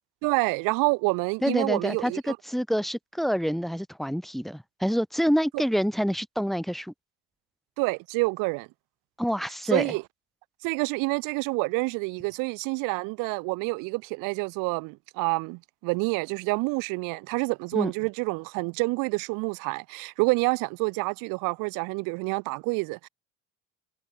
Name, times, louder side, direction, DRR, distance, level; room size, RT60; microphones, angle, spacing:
voice 1, 0.2-2.4 7.8-8.7 9.7-10.0 10.6-23.1, right 28 dB, 75° right, 2.6 m, -28 dB
voice 2, 1.4-6.9 9.2-9.9 17.7-17.9, equal, ahead, 1.6 m, -27 dB
hypercardioid pair, 75°, 33 cm